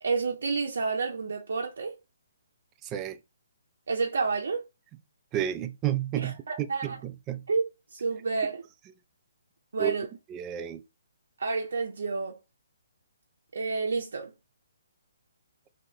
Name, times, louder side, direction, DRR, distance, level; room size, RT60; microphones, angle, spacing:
voice 1, 0.0-2.0 3.9-4.6 6.2-7.0 7.5-7.6 7.9-8.6 9.7-10.1 11.4-12.4 13.5-14.3, right 4 dB, 60° right, 0.6 m, -29 dB
voice 2, 2.8-3.2 5.3-6.3 6.8-7.4 9.8-9.9 10.3-10.8, right 11 dB, 20° right, 0.3 m, -31 dB
2.8 x 2.3 x 4.0 m
figure-of-eight pair, 135°, 0 cm